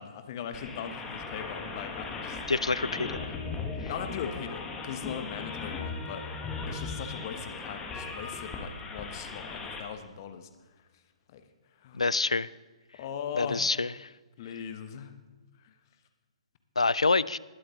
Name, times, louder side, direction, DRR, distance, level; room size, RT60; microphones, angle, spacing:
voice 1, 0.0-2.4 3.9-6.3 6.7-10.5 11.3-11.4 11.8-12.0 12.9-13.7 14.4-15.1 15.6-15.7, left 8 dB, 40° left, 9 dB, 1.1 m, -39 dB
sound 1, 0.5-9.8, left 4 dB, 15° left, 1.3 m, -38 dB
voice 2, 2.5-3.3 11.9-12.5 13.4-13.9 16.8-17.4, left 3 dB, 75° left, 20 dB, 0.3 m, -26 dB
20.0 x 7.8 x 3.7 m, 1.2 s
figure-of-eight pair, 125°, 3 cm